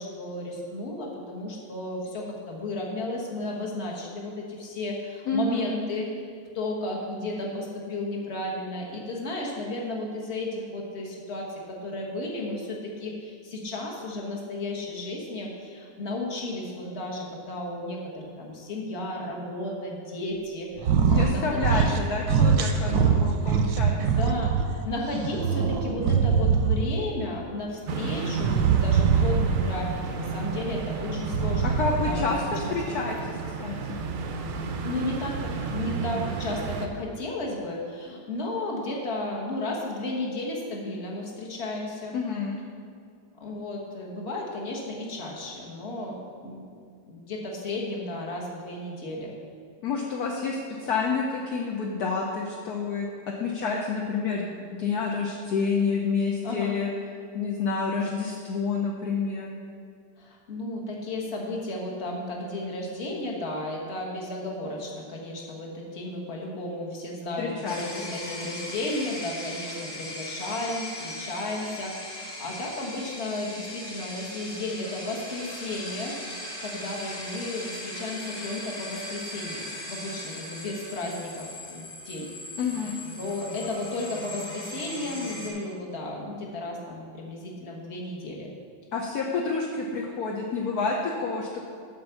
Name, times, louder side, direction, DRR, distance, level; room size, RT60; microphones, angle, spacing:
voice 1, 0.0-6.1 6.5-21.9 24.0-31.8 32.0-32.3 32.6-32.7 34.8-42.2 43.4-46.6 47.1-49.3 56.4-56.8 60.2-82.3 83.2-88.5, left 2 dB, 40° left, -1 dB, 1.5 m, -33 dB
voice 2, 5.3-5.7 21.1-24.2 31.6-34.0 42.1-42.6 49.8-56.9 57.3-59.5 67.4-67.8 82.6-83.0 88.9-91.6, left 4 dB, 65° left, -1 dB, 1.2 m, -29 dB
sound 1, 20.8-21.3 21.6-22.0 22.3-24.7 25.1-27.0 28.4-29.8 31.2-32.3, right 6 dB, 85° right, 1.4 m, -22 dB
sound 2, 27.9-36.9, right 4 dB, 65° right, 0.8 m, -32 dB
sound 3, 67.7-85.5, left 1 dB, 20° left, 1.5 m, -39 dB
8.0 x 5.2 x 6.8 m, 2.2 s
omnidirectional pair, 2.0 m